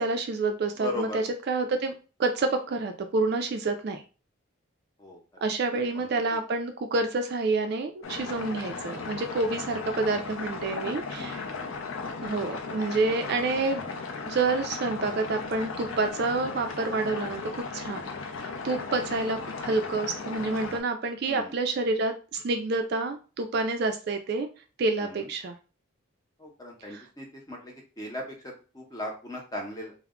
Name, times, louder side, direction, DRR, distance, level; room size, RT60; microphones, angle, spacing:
voice 1, 0.0-1.9 2.2-4.0 5.4-11.5 12.2-13.8 14.2-17.4 17.7-18.1 18.4-24.5 24.8-25.5 26.9-27.1, right 3 dB, 50° right, 6 dB, 0.3 m, -28 dB
voice 2, 0.8-1.2 5.0-5.2 5.7-6.1 11.2-11.7 12.0-12.2 21.3-21.5 25.0-25.3 26.4-29.9, left 2 dB, 20° left, 0 dB, 0.6 m, -38 dB
sound 1, 8.0-20.8, left 4 dB, 70° left, 0.4 m, -36 dB
2.2 x 2.0 x 3.5 m, 0.35 s
head